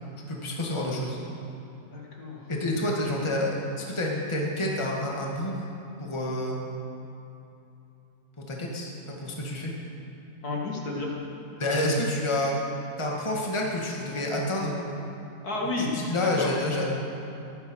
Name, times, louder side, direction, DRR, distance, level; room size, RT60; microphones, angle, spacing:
voice 1, 0.3-1.2 2.5-5.6 6.0-6.6 8.5-9.7 11.6-12.6 13.0-14.9 15.8-16.9, left 1 dB, 15° left, -2 dB, 1.8 m, -28 dB
voice 2, 1.8-2.4 10.4-11.1 15.4-15.9 16.2-16.5, left 2 dB, 55° left, -2 dB, 2.5 m, -31 dB
15.5 x 12.0 x 6.3 m, 2.9 s
omnidirectional pair, 1.9 m